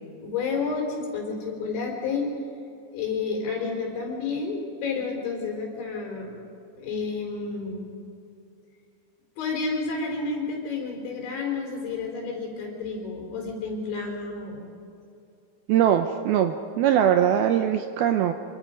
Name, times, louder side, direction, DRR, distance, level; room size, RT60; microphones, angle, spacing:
voice 1, 0.2-2.3 2.9-6.3 6.8-7.9 9.4-14.7, left 4 dB, 80° left, 0 dB, 6.7 m, -30 dB
voice 2, 15.7-18.3, right 10 dB, 85° right, 7 dB, 2.2 m, -21 dB
27.0 x 25.5 x 5.3 m, 2.6 s
omnidirectional pair, 5.2 m